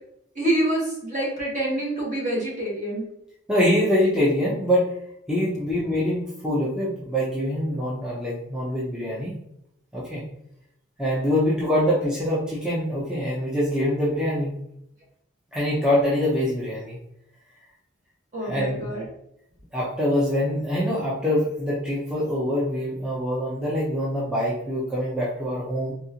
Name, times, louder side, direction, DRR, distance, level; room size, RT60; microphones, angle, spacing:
voice 1, 0.3-3.0 18.3-19.1, right 1 dB, 40° right, -4 dB, 1.3 m, -26 dB
voice 2, 3.5-4.9 5.3-9.3 9.9-10.2 11.0-14.5 15.5-17.0 18.4-19.0 19.7-25.9, equal, 5° right, -7 dB, 0.7 m, -24 dB
4.1 x 2.4 x 2.8 m, 0.77 s
head